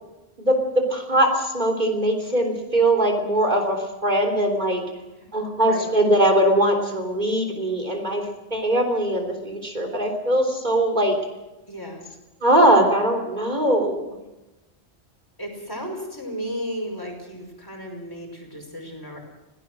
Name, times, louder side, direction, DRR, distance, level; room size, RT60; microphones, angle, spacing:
voice 1, 0.4-4.8 5.3-8.2 8.5-11.2 12.4-14.0, right 1 dB, 45° right, 3 dB, 3.7 m, -21 dB
voice 2, 5.6-5.9 11.7-12.0 15.4-19.2, equal, 20° left, 0 dB, 5.5 m, -34 dB
25.0 x 17.5 x 6.4 m, 1.0 s
omnidirectional pair, 1.1 m